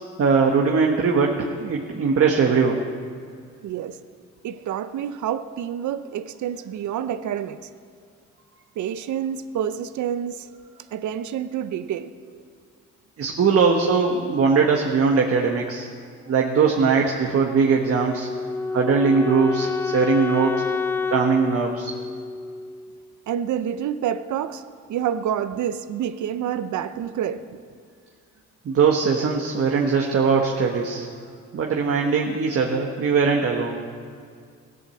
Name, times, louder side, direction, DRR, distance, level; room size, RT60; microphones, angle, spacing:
voice 1, 0.2-2.9 13.2-15.9 16.3-18.3 18.7-20.6 21.1-21.9 28.6-31.1 31.5-33.8, right 5 dB, 50° right, 1 dB, 1.4 m, -20 dB
voice 2, 3.6-4.0 4.4-7.6 8.8-10.5 10.9-12.1 23.3-24.6 24.9-27.4, right 9 dB, 75° right, 11 dB, 0.8 m, -28 dB
Wind instrument woodwind instrument, 17.9-23.0, left 5 dB, 10° left, 0.3 m, -28 dB
16.0 x 11.0 x 7.7 m, 2.2 s
cardioid pair, 90°, 30 cm